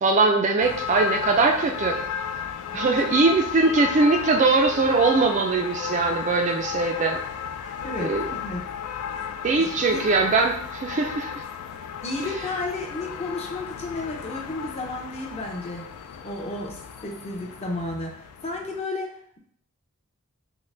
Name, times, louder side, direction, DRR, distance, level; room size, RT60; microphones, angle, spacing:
voice 1, 0.0-2.0 2.7-7.2 8.0-8.2 9.4-11.4, right 3 dB, 35° right, 3 dB, 0.3 m, -21 dB
sound 1, 0.6-18.8, left 7 dB, 75° left, 0.3 m, -34 dB
voice 2, 7.8-8.6 9.6-10.0 12.0-15.9 16.2-18.2 18.4-19.4, left 2 dB, 30° left, 0 dB, 0.6 m, -32 dB
3.8 x 2.1 x 3.2 m, 0.63 s
head